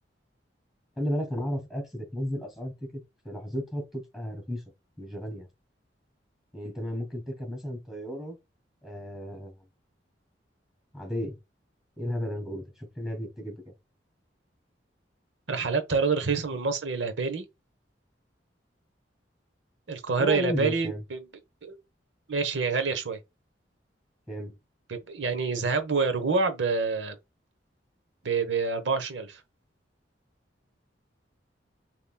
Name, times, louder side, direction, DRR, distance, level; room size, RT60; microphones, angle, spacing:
voice 1, 1.0-4.6 5.0-5.5 6.5-8.4 8.8-9.5 10.9-11.4 12.0-13.7 20.2-21.0 24.3-24.5, equal, ahead, 2.2 m, -34 dB
voice 2, 15.5-17.4 19.9-21.2 21.6-21.8 22.3-23.2 24.9-27.2 28.2-29.4, right 4 dB, 80° right, 0.9 m, -27 dB
6.8 x 3.0 x 2.2 m
head